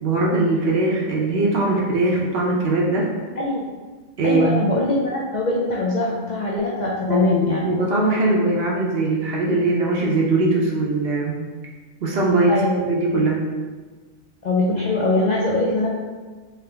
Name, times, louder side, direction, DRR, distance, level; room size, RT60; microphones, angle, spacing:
voice 1, 0.0-3.1 4.2-4.5 7.1-7.4 7.6-11.3 12.0-12.6 12.9-13.5, right 2 dB, 55° right, -2 dB, 0.8 m, -20 dB
voice 2, 3.4-3.7 4.2-7.7 12.5-12.9 14.4-15.9, left 2 dB, 80° left, -4 dB, 0.3 m, -22 dB
3.6 x 2.9 x 3.3 m, 1.4 s
omnidirectional pair, 1.4 m